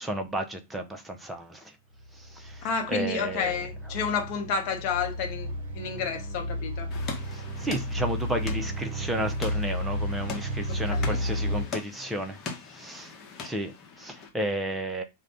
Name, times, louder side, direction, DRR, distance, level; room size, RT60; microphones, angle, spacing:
voice 1, 0.0-1.8 2.1-3.6 7.3-12.4 12.7-13.1 13.4-15.0, right 1 dB, 5° right, 0.6 m, -33 dB
sound 1, 2.0-11.6, equal, 55° right, 0.7 m, -33 dB
voice 2, 2.6-6.9 10.9-11.2, left 6 dB, 45° left, 0.7 m, -30 dB
sound 2, 6.9-14.3, left 4 dB, 30° left, 1.0 m, -41 dB
3.6 x 2.2 x 3.5 m
figure-of-eight pair, 90°, 0 cm